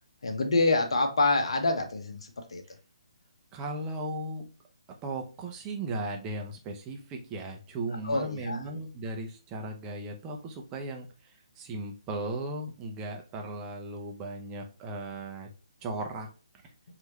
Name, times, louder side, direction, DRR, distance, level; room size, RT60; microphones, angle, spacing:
voice 1, 0.2-2.2 2.5-2.6 8.0-8.6, left 2 dB, 65° left, 1.1 m, -26 dB
voice 2, 3.5-4.5 5.0-15.5 15.8-16.3, right 2 dB, 20° right, 0.8 m, -37 dB
4.7 x 2.9 x 2.9 m
figure-of-eight pair, 140°, 3 cm